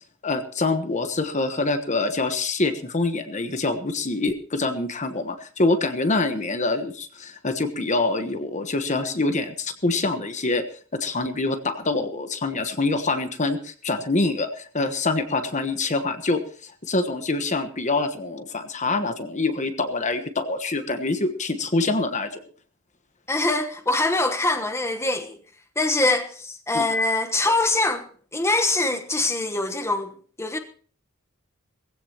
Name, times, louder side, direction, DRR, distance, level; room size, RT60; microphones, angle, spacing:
voice 1, 0.2-10.6 10.9-22.4 26.7-26.8, left 3 dB, 35° left, 1.2 m, -25 dB
voice 2, 23.3-25.4 25.8-28.1 28.3-30.1 30.4-30.6, left 2 dB, 15° left, 1.2 m, -23 dB
19.0 x 16.0 x 3.0 m
head